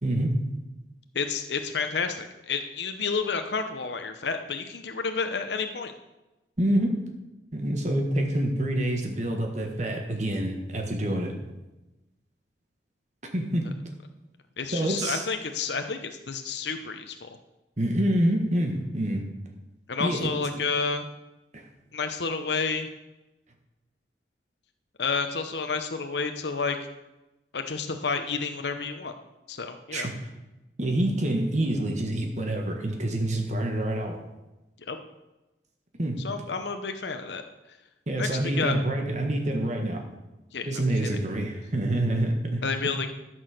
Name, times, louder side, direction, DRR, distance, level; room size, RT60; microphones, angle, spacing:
voice 1, 0.0-0.4 6.6-7.1 7.5-11.3 13.3-13.7 14.7-15.2 17.8-19.3 20.0-20.4 21.5-21.6 29.9-30.3 30.8-34.2 36.0-36.3 38.1-40.0 40.7-42.6, right 1 dB, 40° right, 2 dB, 1.5 m, -27 dB
voice 2, 1.1-5.9 14.6-17.3 19.9-21.1 21.9-22.9 25.0-26.8 27.5-29.1 29.5-30.1 34.9-35.0 36.2-37.8 38.2-38.7 40.5-41.1 42.6-43.1, left 5 dB, 75° left, 6 dB, 0.8 m, -30 dB
13.0 x 6.3 x 6.5 m, 1.0 s
head